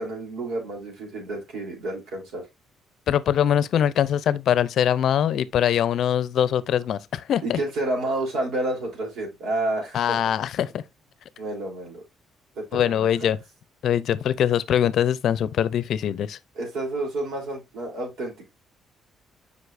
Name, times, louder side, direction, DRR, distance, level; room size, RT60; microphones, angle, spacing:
voice 1, 0.0-2.4 7.4-10.2 11.4-12.0 12.6-13.3 16.6-18.5, right 2 dB, 75° right, 3.6 m, -30 dB
voice 2, 3.1-7.6 9.9-10.8 12.7-13.4 13.8-16.4, left 10 dB, 65° left, 0.6 m, -22 dB
8.1 x 5.3 x 2.6 m
cardioid pair, 100°, 0 cm